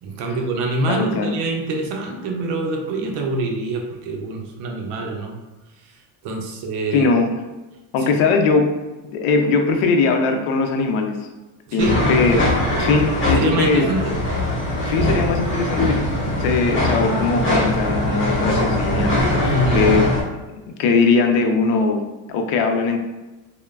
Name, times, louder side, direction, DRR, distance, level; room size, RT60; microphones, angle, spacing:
voice 1, 0.0-5.4 5.8-5.9 6.2-7.1 8.0-8.1 11.7-12.0 13.3-14.1 19.4-19.9, right 2 dB, 55° right, 2 dB, 0.6 m, -25 dB
voice 2, 0.9-1.3 6.9-7.2 7.9-8.7 9.1-11.3 11.7-12.4 12.8-13.9 14.9-19.5 19.7-20.1 20.8-22.0 22.3-23.0, left 4 dB, 75° left, 4 dB, 0.6 m, -20 dB
sound 1, 11.8-20.2, left 1 dB, 25° left, 1.0 m, -21 dB
2.9 x 2.1 x 2.3 m, 1.1 s
cardioid pair, 110°, 49 cm